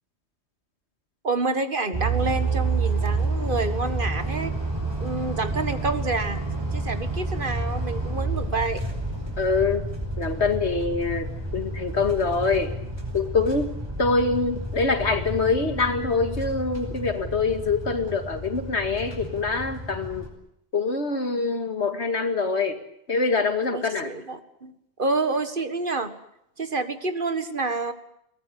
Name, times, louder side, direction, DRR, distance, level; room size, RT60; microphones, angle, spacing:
voice 1, 1.2-4.5 5.0-6.4 6.7-8.8 23.7-26.1 26.6-27.9, right 3 dB, 50° right, 10 dB, 1.9 m, -28 dB
sound 1, 1.9-20.3, right 2 dB, 25° right, 5.6 m, -30 dB
voice 2, 9.4-9.9 10.2-12.7 13.1-13.7 14.0-20.3 20.7-22.8 23.1-24.1, left 4 dB, 85° left, 8 dB, 2.5 m, -25 dB
22.5 x 18.5 x 9.5 m, 0.75 s
omnidirectional pair, 1.1 m